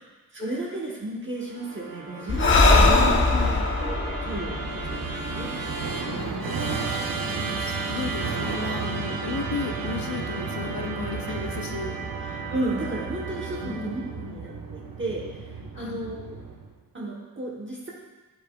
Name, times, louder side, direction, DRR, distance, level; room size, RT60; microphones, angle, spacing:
voice 1, 0.3-5.5 6.3-6.4 11.3-11.4 12.2-14.0 14.3-16.2 16.9-17.9, right 1 dB, 35° right, -4 dB, 1.0 m, -33 dB
Musical instrument, 1.5-16.8, right 4 dB, 85° right, 0.8 m, -33 dB
Breathing, 2.3-5.8, left 2 dB, 35° left, 0.7 m, -21 dB
voice 2, 2.6-3.6 6.1-6.4 7.3-11.9 13.6-14.4 15.7-16.0, left 5 dB, 85° left, 4 dB, 0.7 m, -35 dB
8.9 x 5.3 x 2.3 m, 1.2 s
wide cardioid pair, 120°, 34 cm